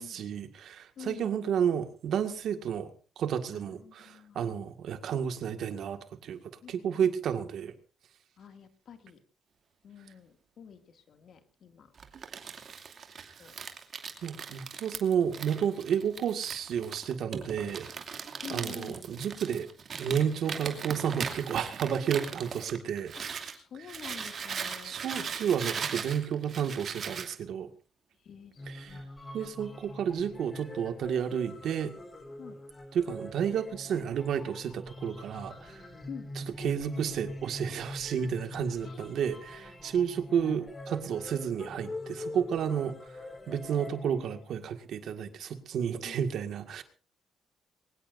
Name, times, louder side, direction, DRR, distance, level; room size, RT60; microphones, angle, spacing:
voice 1, 0.0-6.4 6.7-7.7 14.2-17.9 18.5-19.7 20.0-23.1 24.8-27.7 28.7-29.0 29.3-31.9 32.9-35.8 36.4-43.0 43.5-46.8, right 8 dB, 70° right, 8 dB, 1.9 m, -31 dB
voice 2, 1.0-1.3 3.5-4.5 6.6-7.1 8.4-9.2 9.8-11.9 13.4-13.6 18.4-19.1 23.1-23.2 23.5-25.0 28.2-29.0 32.4-32.6 36.1-36.3 38.8-39.6 46.0-46.2, left 7 dB, 60° left, 7 dB, 2.4 m, -48 dB
Crumpling crinkling, 12.0-23.6 23.9-27.3, right 6 dB, 55° right, 2.6 m, -39 dB
sound 1, 28.6-44.6, left 1 dB, 25° left, 3.9 m, -44 dB
22.5 x 20.5 x 2.7 m, 0.36 s
cardioid pair, 90°, 0 cm